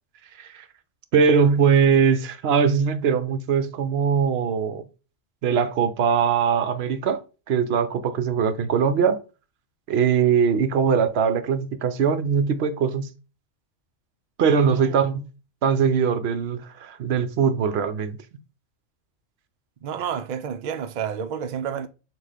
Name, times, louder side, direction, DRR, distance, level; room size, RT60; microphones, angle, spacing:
voice 1, 1.1-4.9 5.4-7.2 7.5-9.2 9.9-13.1 14.4-15.3 15.6-18.2, right 6 dB, 60° right, 0.8 m, -21 dB
voice 2, 14.6-14.9 19.8-21.9, right 8 dB, 85° right, 0.4 m, -30 dB
5.9 x 2.4 x 3.4 m
omnidirectional pair, 1.3 m